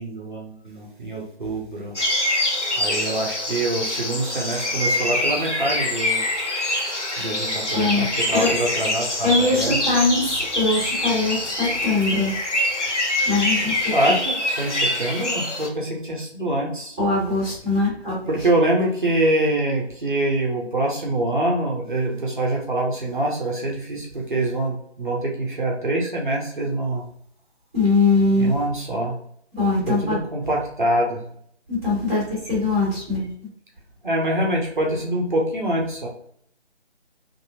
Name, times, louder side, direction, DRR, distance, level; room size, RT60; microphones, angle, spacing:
voice 1, 0.0-2.0 2.8-6.2 7.2-9.8 13.9-17.0 18.3-27.0 28.4-29.1 29.9-31.2 34.0-36.1, right 1 dB, 45° right, -2 dB, 0.7 m, -25 dB
sound 1, 2.0-15.7, left 1 dB, 85° left, 1.0 m, -25 dB
voice 2, 7.7-8.0 8.3-8.5 9.2-12.3 13.2-13.7 17.0-18.3 27.7-28.5 29.5-30.2 31.7-33.3, left 3 dB, 10° right, -7 dB, 1.4 m, -21 dB
2.8 x 2.6 x 2.7 m, 0.65 s
figure-of-eight pair, 155°, 35 cm